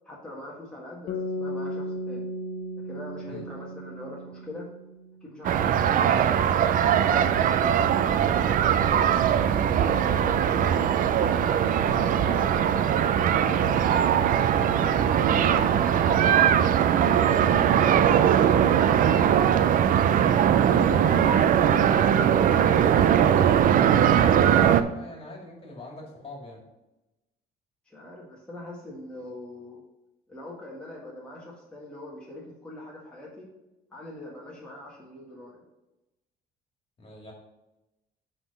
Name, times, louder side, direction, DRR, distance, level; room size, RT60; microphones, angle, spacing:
voice 1, 0.0-2.3 2.8-4.7 5.2-7.9 8.5-9.1 9.3-10.9 11.5-12.0 20.8-22.0 27.8-29.8 30.3-33.5 33.9-35.6, left 1 dB, 5° left, -5 dB, 1.7 m, -42 dB
sound 1, 1.1-5.3, left 1 dB, 80° left, 0.8 m, -35 dB
sound 2, 5.4-24.8, right 9 dB, 55° right, 0.5 m, -21 dB
voice 2, 8.8-9.5 11.7-20.1 20.8-21.3 22.7-26.6 37.0-37.3, left 2 dB, 35° left, -1 dB, 2.4 m, -42 dB
8.2 x 3.8 x 5.4 m, 0.98 s
cardioid pair, 110°, 17 cm